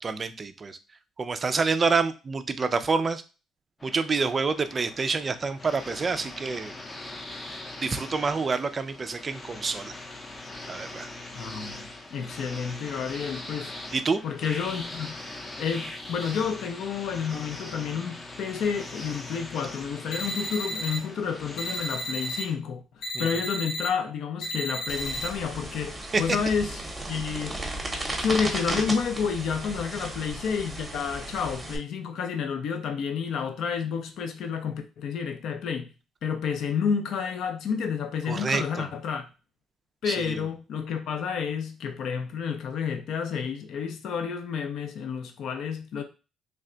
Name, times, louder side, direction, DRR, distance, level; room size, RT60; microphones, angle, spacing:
voice 1, 0.0-0.8 1.2-3.2 3.8-6.7 7.8-9.9 10.7-11.1 13.9-14.2 23.1-23.3 26.1-26.2 38.3-38.9 40.1-40.4, right 4 dB, 30° right, 0.3 m, -27 dB
sound 1, 3.8-22.6, left 2 dB, 20° left, 0.6 m, -41 dB
voice 2, 11.3-13.7 14.2-15.2 15.6-26.8 27.1-27.6 28.2-35.9 36.2-39.2 40.0-46.0, left 6 dB, 65° left, 0.5 m, -30 dB
sound 2, 20.1-21.0 21.6-22.4 23.0-23.9 24.4-25.3, equal, 85° left, 1.2 m, -33 dB
sound 3, 24.9-31.8, right 1 dB, 10° right, 0.8 m, -35 dB
3.3 x 2.2 x 3.7 m
cardioid pair, 130°, 0 cm